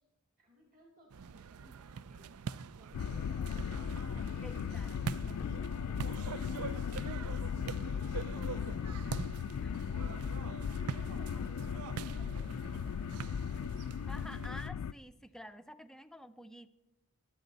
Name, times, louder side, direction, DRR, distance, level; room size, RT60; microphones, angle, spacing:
voice 1, 0.4-2.3 2.7-5.6 5.9-9.7 10.5-13.7 15.2-15.3, equal, 40° right, -1 dB, 3.6 m, -61 dB
sound 1, 1.1-14.7, right 6 dB, 80° right, 0.5 m, -44 dB
sound 2, 2.9-14.9, left 7 dB, 85° left, 0.3 m, -37 dB
voice 2, 4.4-5.4 9.6-9.9 14.1-16.7, equal, ahead, 9 dB, 0.5 m, -50 dB
24.0 x 8.3 x 4.0 m, 1.0 s
head